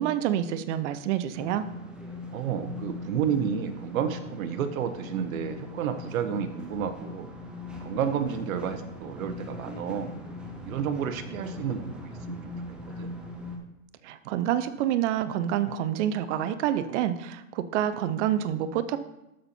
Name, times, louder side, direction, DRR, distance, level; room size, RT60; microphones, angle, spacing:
voice 1, 0.0-1.7 14.0-19.0, right 11 dB, 60° right, 13 dB, 0.7 m, -27 dB
sound 1, 1.3-13.6, left 2 dB, 5° right, 0.3 m, -41 dB
voice 2, 2.3-7.3 7.8-10.1 10.6-12.5 13.0-13.1, right 8 dB, 75° right, 9 dB, 1.1 m, -31 dB
12.5 x 4.3 x 4.3 m, 0.92 s
hypercardioid pair, 135°, 41 cm